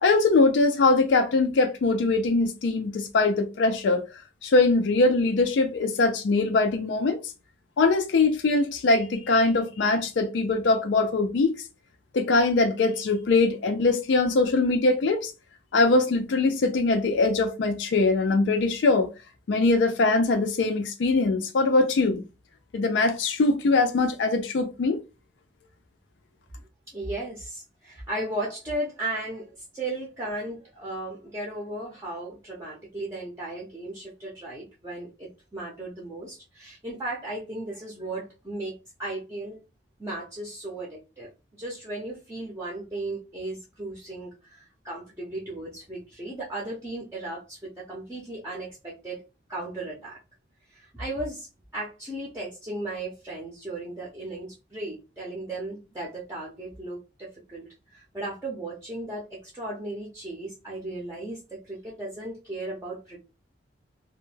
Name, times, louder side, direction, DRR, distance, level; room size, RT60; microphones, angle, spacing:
voice 1, 0.0-4.1 4.4-7.2 7.8-11.6 12.1-15.3 15.7-19.1 19.5-22.2 22.7-25.0, left 3 dB, 70° left, 0.4 m, -22 dB
voice 2, 26.6-39.6 40.0-49.2 49.5-50.2 50.7-51.5 51.7-63.2, right 2 dB, 15° right, 0.5 m, -36 dB
2.2 x 2.1 x 3.1 m
head